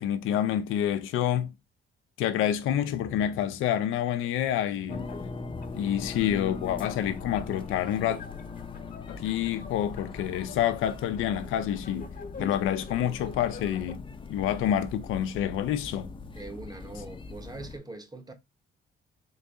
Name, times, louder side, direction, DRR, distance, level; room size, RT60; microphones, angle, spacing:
voice 1, 0.0-1.5 2.2-5.1 5.7-8.2 9.1-12.1 12.4-14.0 14.3-16.1, left 10 dB, 90° left, 0.6 m, -28 dB
sound 1, 2.5-14.0, left 4 dB, 45° left, 1.0 m, -47 dB
sound 2, 4.9-17.8, left 4 dB, 25° left, 0.6 m, -41 dB
voice 2, 16.4-18.3, right 2 dB, 20° right, 0.9 m, -42 dB
4.0 x 2.6 x 3.4 m
cardioid pair, 90°, 20 cm